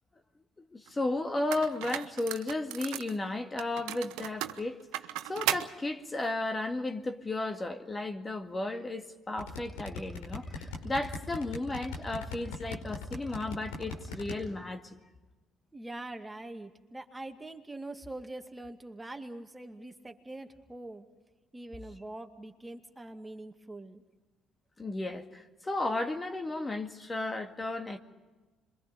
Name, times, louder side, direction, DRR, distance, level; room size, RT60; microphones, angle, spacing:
voice 1, 0.7-15.0 24.8-28.0, left 2 dB, 25° left, 2.0 m, -34 dB
sound 1, 0.9-1.0 1.5-3.2 3.6-5.7, right 14 dB, 80° right, 0.9 m, -35 dB
sound 2, 9.4-14.3, left 4 dB, 90° left, 4.9 m, -38 dB
voice 2, 15.7-21.1 21.5-24.0, right 2 dB, 15° right, 2.2 m, -43 dB
26.5 x 23.5 x 5.4 m
hypercardioid pair, 60°, 0 cm